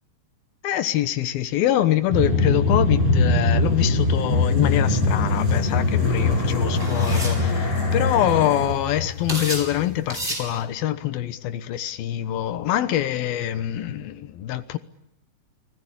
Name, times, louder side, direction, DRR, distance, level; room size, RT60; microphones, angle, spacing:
voice 1, 0.6-14.8, left 12 dB, 85° left, 3.1 m, -24 dB
sound 1, 2.1-10.2, left 2 dB, 45° left, 7.7 m, -22 dB
sound 2, 5.3-5.5 6.7-7.4 8.1-8.2 8.3-8.6 9.3-9.7 10.1-10.5, right 1 dB, 15° right, 7.3 m, -30 dB
29.5 x 20.0 x 9.9 m
omnidirectional pair, 4.2 m